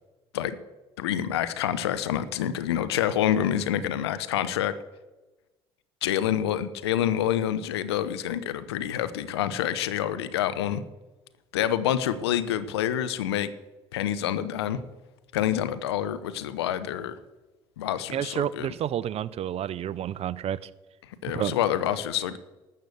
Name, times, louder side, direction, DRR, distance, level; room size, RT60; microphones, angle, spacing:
voice 1, 1.0-4.7 6.0-10.8 11.5-13.5 13.9-14.8 15.3-17.2 17.8-18.7 21.2-22.4, left 10 dB, 90° left, 13 dB, 0.7 m, -27 dB
voice 2, 18.1-20.6 21.3-21.5, right 10 dB, 50° right, 19 dB, 0.6 m, -30 dB
12.5 x 6.8 x 7.9 m, 1.1 s
hypercardioid pair, 60°, 13 cm